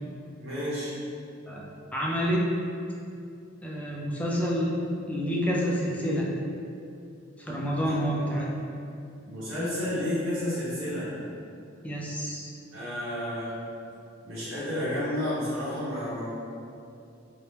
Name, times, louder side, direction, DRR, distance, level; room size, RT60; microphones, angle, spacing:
voice 1, 0.4-0.9 9.2-11.1 12.7-13.6 14.2-16.3, left 1 dB, 70° right, -10 dB, 1.0 m, -31 dB
voice 2, 1.9-2.5 3.6-4.8 5.1-6.3 7.4-8.5 11.8-12.5, equal, 5° left, -4 dB, 0.3 m, -28 dB
2.8 x 2.1 x 3.3 m, 2.5 s
head